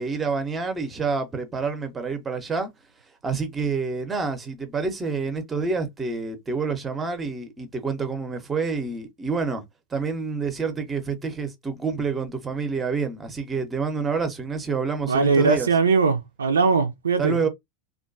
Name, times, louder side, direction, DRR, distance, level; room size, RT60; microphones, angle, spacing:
voice 1, 0.0-2.7 3.2-9.6 9.9-15.7 17.2-17.5, right 4 dB, 20° right, 0.7 m, -28 dB
voice 2, 15.1-17.4, right 4 dB, 80° right, 0.4 m, -20 dB
2.5 x 2.2 x 2.5 m
hypercardioid pair, 90°, 0 cm